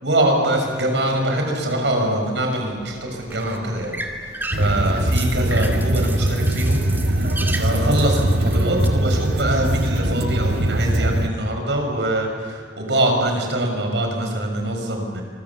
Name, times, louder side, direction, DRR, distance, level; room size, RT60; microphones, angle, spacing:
voice 1, 0.0-6.9 7.6-15.2, right 1 dB, 80° right, 2 dB, 6.3 m, -23 dB
sound 1, 2.7-8.9, right 2 dB, 10° right, 2.2 m, -34 dB
sound 2, 4.5-11.3, right 1 dB, 60° right, 1.4 m, -21 dB
27.0 x 22.0 x 7.3 m, 2.2 s
head